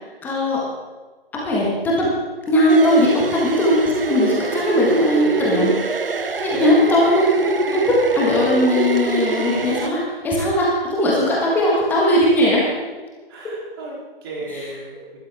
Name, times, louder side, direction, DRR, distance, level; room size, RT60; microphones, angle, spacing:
voice 1, 0.2-0.6 1.4-2.1 2.5-5.7 6.4-7.2 7.7-10.0 10.2-12.6 14.5-14.7, left 1 dB, 5° left, -4 dB, 1.5 m, -18 dB
sound 1, 2.7-9.9, right 3 dB, 65° right, 1.0 m, -23 dB
voice 2, 13.3-15.2, right 2 dB, 25° right, -3 dB, 3.2 m, -34 dB
17.5 x 12.5 x 3.5 m, 1.3 s
figure-of-eight pair, 145°, 30 cm